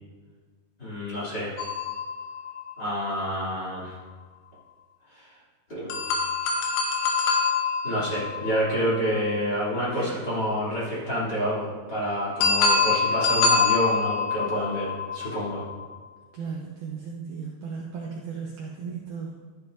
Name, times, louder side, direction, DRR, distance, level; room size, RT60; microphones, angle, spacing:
voice 1, 0.8-1.6 2.8-4.0 5.1-5.3 5.7-6.0 7.8-15.6, equal, 30° left, -10 dB, 3.1 m, -28 dB
sound 1, 1.6-3.3 5.9-9.8 12.4-15.9, left 4 dB, 80° left, 3.1 m, -26 dB
voice 2, 16.3-19.3, right 5 dB, 70° right, -2 dB, 1.9 m, -36 dB
13.5 x 10.5 x 2.6 m, 1.5 s
omnidirectional pair, 4.4 m